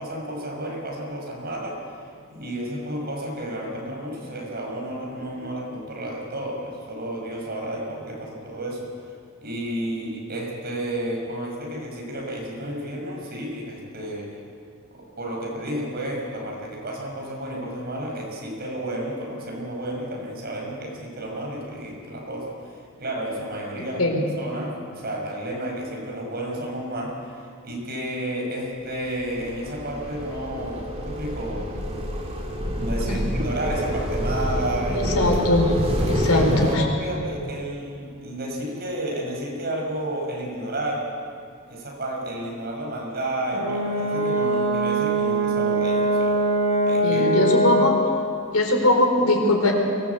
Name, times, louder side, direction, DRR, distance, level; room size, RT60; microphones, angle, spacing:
voice 1, 0.0-1.8 2.3-8.9 9.4-14.4 14.9-24.0 24.4-31.7 32.7-35.3 35.6-35.7 36.3-41.1 41.7-46.4 46.8-47.4, right 1 dB, 45° right, -1 dB, 6.0 m, -31 dB
sound 1, 29.2-36.8, equal, 30° right, 3.4 m, -27 dB
voice 2, 34.9-35.7 36.1-36.8 47.0-48.0 48.5-49.7, left 1 dB, 85° left, 2 dB, 4.4 m, -21 dB
Brass instrument, 43.5-48.0, right 1 dB, 85° right, 6.7 m, -22 dB
23.5 x 19.5 x 8.3 m, 2.3 s
head